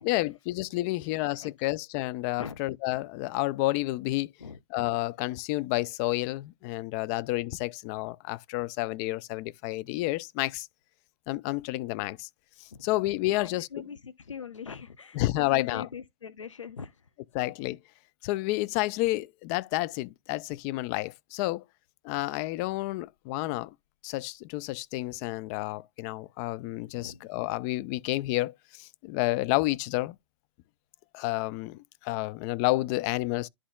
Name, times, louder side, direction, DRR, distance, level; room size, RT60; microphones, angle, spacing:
voice 1, 0.0-4.3 4.7-10.7 11.3-12.3 12.6-13.7 15.1-15.9 17.3-17.8 18.2-21.6 22.0-23.7 24.0-30.2 31.1-33.5, left 19 dB, 35° left, 0.4 m, -30 dB
voice 2, 1.2-1.5 2.4-2.6 4.4-4.6 12.7-12.9 13.2-17.1 26.9-27.2, left 6 dB, 90° left, 0.5 m, -42 dB
11.0 x 4.1 x 2.3 m
hypercardioid pair, 115°, 15 cm